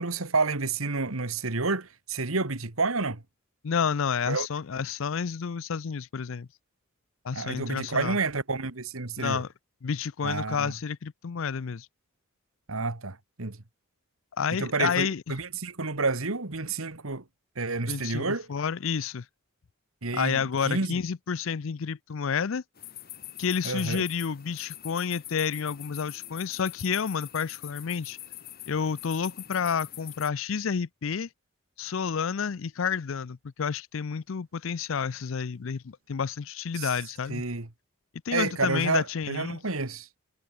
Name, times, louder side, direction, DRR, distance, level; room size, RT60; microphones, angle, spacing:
voice 1, 0.0-3.2 4.3-4.5 7.3-9.4 10.2-10.7 12.7-13.6 14.5-17.2 17.6-18.5 20.0-21.0 23.6-24.0 36.8-36.9 37.3-37.7 38.3-40.1, right 3 dB, 75° right, 1.9 m, -30 dB
voice 2, 3.6-6.5 7.2-8.2 9.2-9.5 9.8-11.9 14.4-15.2 17.9-19.2 20.1-22.6 23.4-28.2 28.7-31.3 31.8-37.4 38.3-39.6, left 6 dB, 65° left, 0.5 m, -30 dB
sound 1, 22.8-30.3, left 13 dB, 45° left, 2.3 m, -43 dB
head